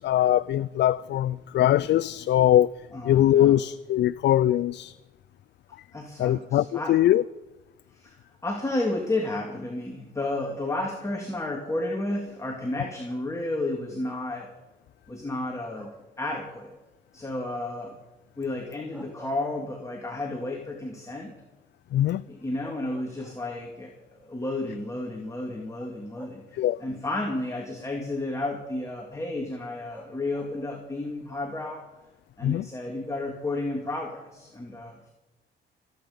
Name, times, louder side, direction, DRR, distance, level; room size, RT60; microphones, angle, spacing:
voice 1, 0.0-2.7 3.0-5.0 6.2-7.2 21.9-22.2 26.5-26.8 32.4-32.7, left 12 dB, 60° left, 0.4 m, -22 dB
voice 2, 2.9-3.6 5.9-7.0 7.9-8.2 8.4-14.5 15.1-15.9 16.2-16.7 17.1-18.0 18.4-21.3 22.3-31.8 32.4-35.1, left 2 dB, 15° left, 2.6 m, -32 dB
sound 1, 15.7-16.2 18.7-20.1 20.5-20.6 22.1-22.2 22.6-23.8 24.8-24.9 26.2-26.9 29.9-30.8, right 1 dB, 10° right, 3.1 m, -49 dB
23.5 x 9.3 x 5.3 m
cardioid pair, 90°, 20 cm